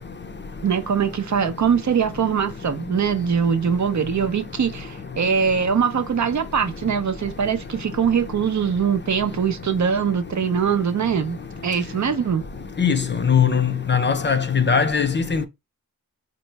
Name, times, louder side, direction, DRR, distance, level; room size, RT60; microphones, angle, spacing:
voice 1, 0.6-11.4 11.6-12.4, right 7 dB, 55° right, 0.6 m, -22 dB
voice 2, 12.8-15.5, left 6 dB, 30° left, 0.4 m, -20 dB
4.4 x 2.0 x 3.2 m
wide cardioid pair, 95°, 35 cm